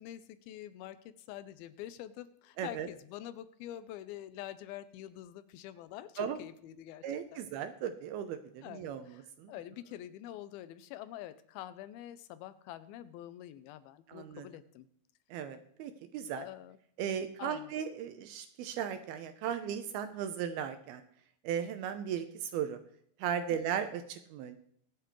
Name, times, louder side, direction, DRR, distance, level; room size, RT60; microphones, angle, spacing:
voice 1, 0.0-7.4 8.6-14.9 16.4-16.8 17.4-17.7 23.5-23.6, left 12 dB, 80° left, 13 dB, 2.2 m, -46 dB
voice 2, 2.6-2.9 6.2-6.4 7.0-9.5 14.1-14.5 15.3-16.5 17.0-21.0 21.4-22.8 23.2-24.6, right 8 dB, 80° right, 9 dB, 2.4 m, -37 dB
24.0 x 8.0 x 3.1 m, 0.66 s
omnidirectional pair, 4.8 m